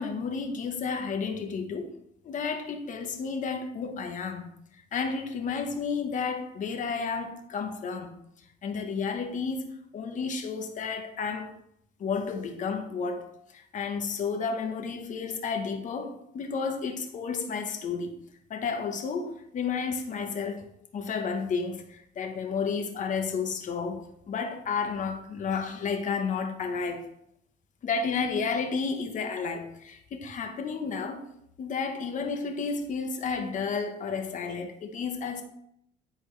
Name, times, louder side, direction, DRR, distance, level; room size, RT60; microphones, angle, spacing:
voice 1, 0.0-1.9 2.2-4.5 4.9-8.1 8.6-11.6 12.0-18.1 18.5-20.7 20.9-27.1 27.8-31.2 31.6-35.4, left 5 dB, 50° left, 1.2 m, -32 dB
10.0 x 4.3 x 3.3 m
cardioid pair, 110°, 17 cm